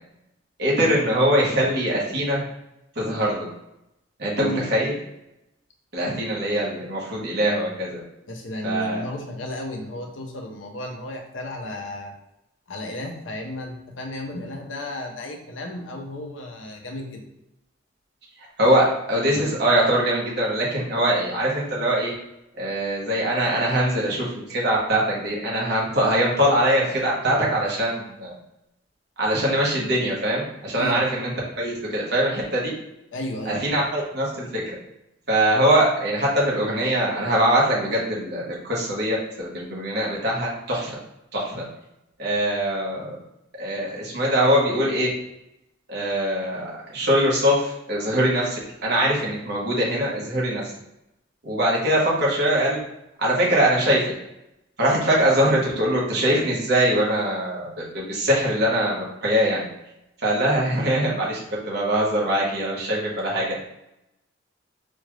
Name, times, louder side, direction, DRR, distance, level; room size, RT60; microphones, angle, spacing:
voice 1, 0.6-2.4 2.9-3.5 4.2-4.9 5.9-8.0 8.6-9.0 18.6-22.1 22.6-28.4 29.2-31.3 31.6-32.7 33.4-34.7 35.3-40.9 41.3-41.6 42.2-43.2 43.6-45.1 45.9-50.6 51.4-52.8 53.2-54.1 54.8-59.6 60.2-61.4 61.7-63.6, right 1 dB, 55° right, -4 dB, 1.3 m, -22 dB
voice 2, 8.3-12.1 12.7-17.2 23.2-23.3 30.8-31.0 33.1-33.6, left 1 dB, 80° left, 2 dB, 0.7 m, -33 dB
4.2 x 2.5 x 3.2 m, 0.87 s
head